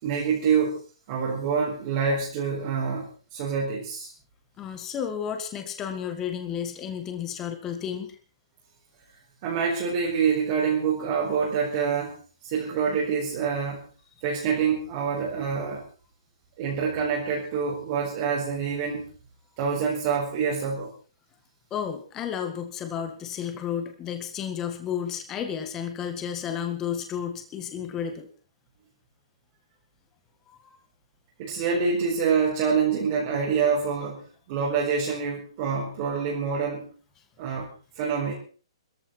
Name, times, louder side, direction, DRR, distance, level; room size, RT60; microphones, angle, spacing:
voice 1, 0.0-0.8 1.1-4.1 9.4-12.2 12.4-13.9 14.2-15.8 16.6-19.1 19.6-20.9 31.4-36.9 37.4-37.7 38.0-38.3, right 6 dB, 25° right, -4 dB, 4.5 m, -26 dB
voice 2, 4.6-8.2 21.7-28.3 30.5-30.8, left 8 dB, 15° left, 6 dB, 1.8 m, -32 dB
22.0 x 14.0 x 4.5 m, 0.39 s
hypercardioid pair, 175°, 3 cm